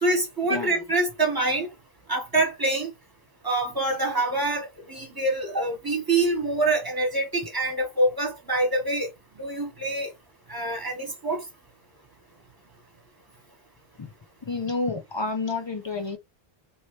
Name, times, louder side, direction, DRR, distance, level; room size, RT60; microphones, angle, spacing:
voice 1, 0.0-1.7 2.1-2.9 3.4-9.1 9.4-10.1 10.5-11.4, right 2 dB, 20° right, 1.2 m, -25 dB
voice 2, 14.4-16.2, left 3 dB, 40° left, 0.4 m, -29 dB
3.0 x 2.8 x 3.0 m
omnidirectional pair, 1.0 m